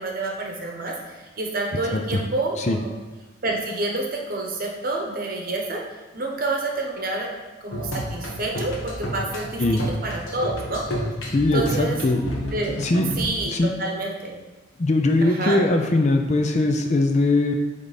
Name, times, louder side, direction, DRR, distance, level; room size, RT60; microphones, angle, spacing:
voice 1, 0.0-2.9 3.4-5.8 6.1-7.3 7.6-10.8 11.5-12.0 12.5-12.8 13.2-14.4 15.2-15.6, right 2 dB, 45° right, 0 dB, 1.0 m, -28 dB
sound 1, 7.7-13.3, equal, 75° left, 1.4 m, -30 dB
voice 2, 11.3-12.2 12.8-13.1 13.4-13.7 14.8-17.5, left 2 dB, 35° left, 4 dB, 0.4 m, -21 dB
8.4 x 3.4 x 4.1 m, 1.2 s
head